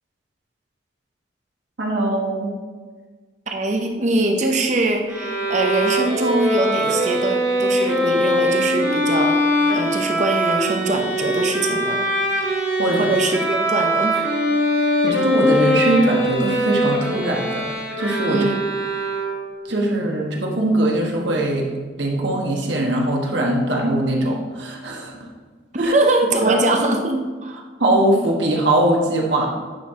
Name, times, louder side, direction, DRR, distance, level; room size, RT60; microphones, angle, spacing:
voice 1, 1.8-2.5 12.8-13.0 15.0-17.7 18.0-18.5 19.7-21.7 22.0-25.2 25.8-25.9 26.4-26.6 27.8-29.5, right 1 dB, 75° right, 0 dB, 1.4 m, -21 dB
voice 2, 3.5-9.4 9.7-12.1 13.0-14.2 18.3-18.6 25.7-27.6, right 2 dB, 40° right, 3 dB, 0.7 m, -22 dB
Bowed string instrument, 5.1-19.6, equal, 15° right, 2.4 m, -22 dB
9.5 x 4.6 x 3.7 m, 1.5 s
head